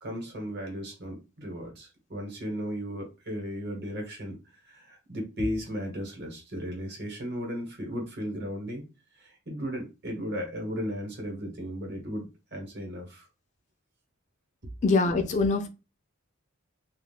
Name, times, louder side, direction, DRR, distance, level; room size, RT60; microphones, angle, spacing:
voice 1, 0.0-4.4 4.6-8.8 9.2-13.3, equal, 55° right, 1.1 m, -35 dB
voice 2, 14.8-15.7, left 3 dB, 35° left, 0.3 m, -23 dB
2.3 x 2.3 x 3.3 m
head